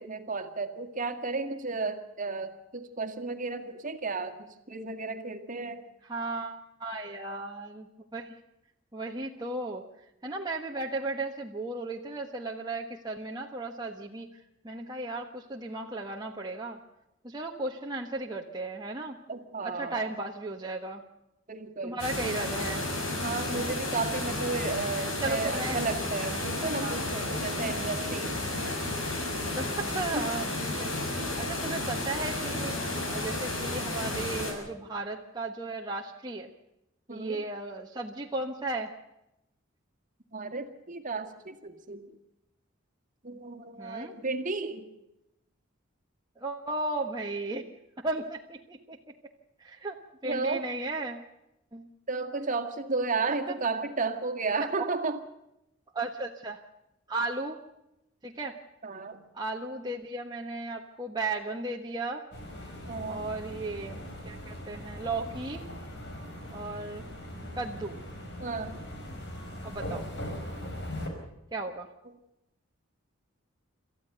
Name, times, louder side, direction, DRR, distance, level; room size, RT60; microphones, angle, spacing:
voice 1, 0.0-5.8 19.3-20.2 21.5-22.0 23.2-28.4 30.1-30.2 37.1-37.4 40.3-42.0 43.2-44.9 50.2-50.7 52.1-55.2 58.8-59.2 62.9-63.3 68.4-68.8 72.1-72.2, right 3 dB, 40° right, 7 dB, 2.0 m, -33 dB
voice 2, 6.1-8.3 8.9-9.8 10.2-14.3 14.6-16.8 17.2-19.2 19.6-21.0 21.8-22.8 25.2-25.8 26.6-27.1 29.6-32.8 33.1-36.5 37.1-38.9 43.8-44.1 46.4-47.6 48.0-49.0 49.6-50.0 50.2-51.3 51.7-51.9 53.3-53.6 54.6-54.9 55.9-56.6 57.1-57.6 58.2-58.6 59.3-62.2 63.1-65.6 66.5-67.0 67.6-68.0 69.6-70.1 71.5-71.9, right 2 dB, 20° right, 0 dB, 1.3 m, -35 dB
sound 1, 22.0-34.5, left 2 dB, 70° left, 6.8 m, -32 dB
sound 2, 62.3-71.1, left 1 dB, 55° left, 5.0 m, -40 dB
28.0 x 14.0 x 6.8 m, 0.88 s
head